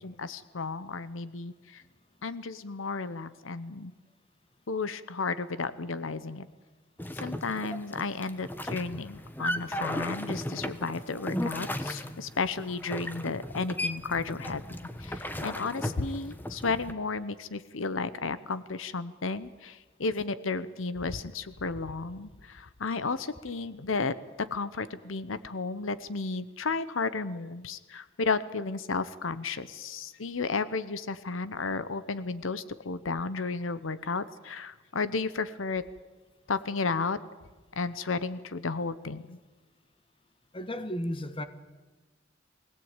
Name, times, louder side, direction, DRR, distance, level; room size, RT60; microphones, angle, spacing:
voice 1, 0.0-1.8 2.2-3.9 4.7-6.5 7.2-35.8 36.5-37.2 37.7-39.4, left 4 dB, 85° left, 14 dB, 0.9 m, -33 dB
sound 1, 7.0-16.9, left 1 dB, 10° left, 1.2 m, -36 dB
voice 2, 40.5-41.5, equal, 25° left, 10 dB, 1.4 m, -33 dB
23.5 x 17.0 x 9.0 m, 1.2 s
head